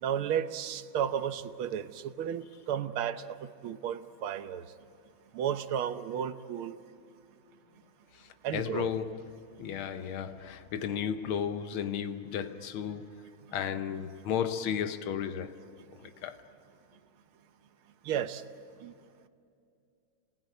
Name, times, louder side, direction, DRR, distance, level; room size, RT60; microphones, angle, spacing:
voice 1, 0.0-4.7 5.3-6.8 8.4-8.9 18.1-18.4 18.8-18.9, right 9 dB, 90° right, 1.8 m, -33 dB
voice 2, 8.1-13.2 13.5-15.6 16.0-16.4, left 8 dB, 80° left, 1.8 m, -34 dB
27.5 x 20.0 x 9.2 m
omnidirectional pair, 2.3 m